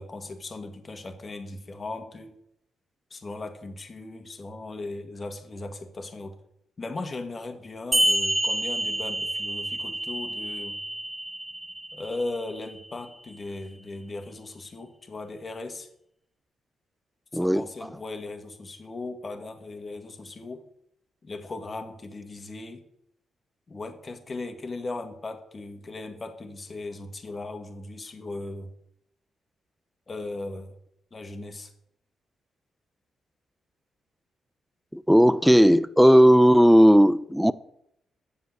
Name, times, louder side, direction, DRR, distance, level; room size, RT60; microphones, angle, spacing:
voice 1, 0.0-2.4 3.1-6.4 6.8-10.8 11.9-15.9 17.3-20.7 21.2-22.8 23.7-28.7 30.1-30.7 31.1-31.7, left 2 dB, 40° left, 1.8 m, -37 dB
sound 1, 7.9-12.9, right 1 dB, 20° right, 1.2 m, -28 dB
voice 2, 17.3-17.6 34.9-37.5, equal, ahead, 0.6 m, -16 dB
8.0 x 7.2 x 7.3 m
hypercardioid pair, 40°, 0 cm